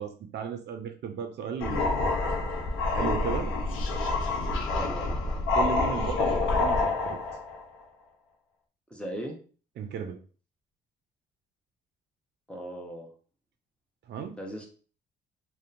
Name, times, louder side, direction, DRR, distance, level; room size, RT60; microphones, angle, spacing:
voice 1, 0.0-2.1 2.9-3.5 5.5-7.2 9.8-10.2 14.1-14.4, right 7 dB, 60° right, 6 dB, 0.4 m, -35 dB
sound 1, 1.6-7.6, left 3 dB, 85° left, 0.6 m, -27 dB
voice 2, 4.7-5.2 8.9-9.4 12.5-13.1 14.4-14.7, right 1 dB, 5° left, 0 dB, 0.7 m, -38 dB
2.7 x 2.1 x 2.5 m, 0.39 s
cardioid pair, 90°, 20 cm